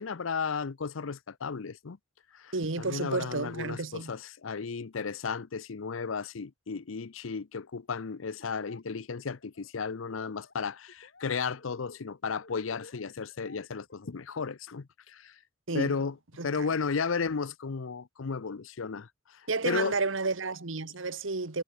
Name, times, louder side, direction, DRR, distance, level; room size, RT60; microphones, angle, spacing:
voice 1, 0.0-2.0 2.3-15.3 15.7-16.1 16.4-20.0, left 5 dB, 85° left, 0.7 m, -34 dB
voice 2, 2.5-4.1 15.7-16.0 16.4-16.5 19.5-21.6, right 3 dB, 75° right, 1.5 m, -31 dB
Laughter, 8.4-8.8 9.1-10.5 10.9-11.3 11.6-14.4, left 2 dB, 60° left, 6.6 m, -54 dB
head